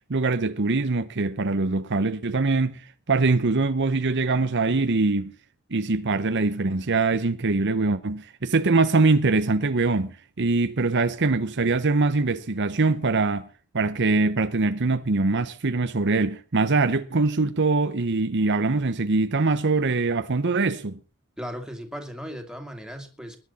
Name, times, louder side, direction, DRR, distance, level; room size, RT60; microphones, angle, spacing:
voice 1, 0.1-2.8 3.1-5.3 5.7-13.5 13.7-21.0, right 3 dB, 55° right, 0.9 m, -23 dB
voice 2, 21.4-23.4, equal, 5° right, 2.5 m, -36 dB
20.5 x 11.0 x 4.2 m
head